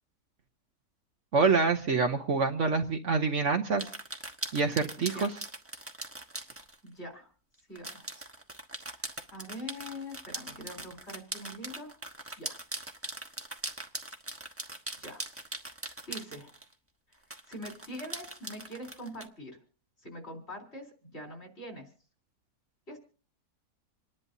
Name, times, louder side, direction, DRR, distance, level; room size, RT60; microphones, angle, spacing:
voice 1, 1.3-3.9 4.5-5.3, right 4 dB, 55° right, 5 dB, 1.1 m, -26 dB
sound 1, 3.8-6.7 7.7-16.7 17.3-19.2, right 1 dB, 10° right, 0.9 m, -41 dB
voice 2, 5.0-5.3 6.8-7.3 7.7-8.3 8.8-12.0 12.4-12.7 15.0-15.3 16.1-16.5 17.5-19.6 20.0-21.9 22.9-23.0, equal, 40° left, 2 dB, 4.1 m, -44 dB
28.0 x 11.0 x 2.7 m, 0.41 s
omnidirectional pair, 1.6 m